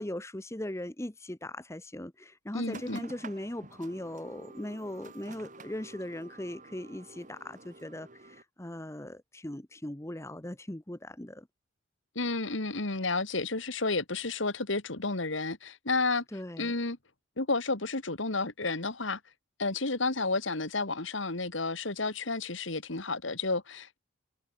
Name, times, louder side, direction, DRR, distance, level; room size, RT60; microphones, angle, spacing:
voice 1, 0.0-11.5 16.3-16.7, left 1 dB, 15° left, 1.0 m, -39 dB
voice 2, 2.5-3.0 12.2-16.2 16.6-17.0 17.4-19.2 19.6-24.0, left 3 dB, 70° left, 2.3 m, -31 dB
sound 1, 2.7-8.4, right 3 dB, 40° right, 2.6 m, -50 dB
head